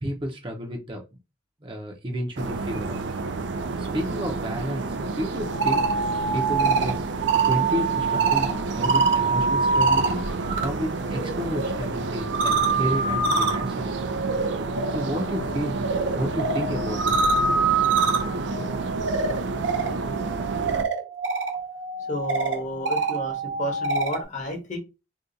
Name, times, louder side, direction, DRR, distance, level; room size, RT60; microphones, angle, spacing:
voice 1, 0.0-1.0 1.6-3.0 3.8-5.9 6.3-7.0 7.4-10.2 10.6-13.9 14.9-15.9 16.1-17.6, equal, 25° right, 2 dB, 0.7 m, -31 dB
sound 1, 2.4-20.8, right 3 dB, 70° right, 0.4 m, -30 dB
sound 2, 5.4-10.7 11.0-24.2, right 4 dB, 85° right, 0.9 m, -25 dB
voice 2, 22.0-24.8, equal, 40° left, 3 dB, 0.9 m, -32 dB
2.6 x 2.4 x 3.8 m, 0.27 s
head